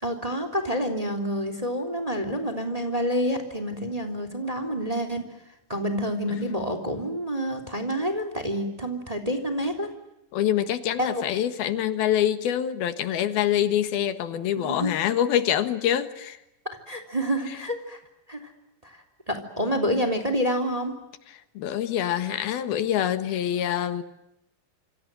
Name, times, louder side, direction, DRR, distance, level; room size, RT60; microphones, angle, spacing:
voice 1, 0.0-5.2 5.7-9.9 11.0-11.2 14.6-14.9 16.6-18.0 18.3-18.4 18.8-19.0 19.3-20.9, equal, 10° right, 8 dB, 3.0 m, -28 dB
voice 2, 10.3-16.4 17.5-17.6 21.3-24.0, left 10 dB, 85° left, 11 dB, 3.4 m, -25 dB
27.5 x 26.5 x 7.8 m, 0.87 s
omnidirectional pair, 4.2 m